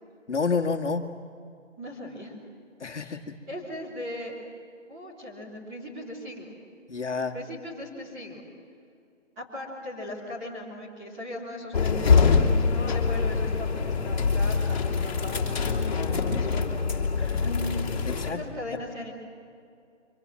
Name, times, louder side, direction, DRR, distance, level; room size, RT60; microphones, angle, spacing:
voice 1, 0.3-1.1 2.8-3.3 6.9-7.3 17.3-17.4 18.1-18.4 18.7-18.8, left 4 dB, 65° left, 4 dB, 2.0 m, -29 dB
voice 2, 1.8-2.3 2.9-3.2 3.5-4.3 4.9-6.5 7.3-8.4 9.3-17.5 18.3-19.1, left 1 dB, 10° right, -6 dB, 3.4 m, -39 dB
sound 1, 11.7-18.3, left 5 dB, 35° left, 3.0 m, -24 dB
25.5 x 24.5 x 7.5 m, 2.4 s
hypercardioid pair, 175°, 37 cm